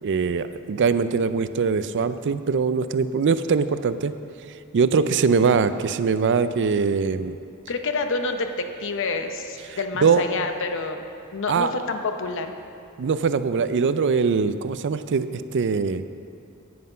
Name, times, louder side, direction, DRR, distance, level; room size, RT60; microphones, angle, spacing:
voice 1, 0.0-4.1 4.7-7.4 9.7-10.2 11.5-11.7 13.0-16.1, right 5 dB, 55° right, 12 dB, 0.4 m, -22 dB
voice 2, 7.7-11.0 11.3-12.5, left 3 dB, 60° left, 6 dB, 0.8 m, -28 dB
9.5 x 9.4 x 5.5 m, 2.5 s
head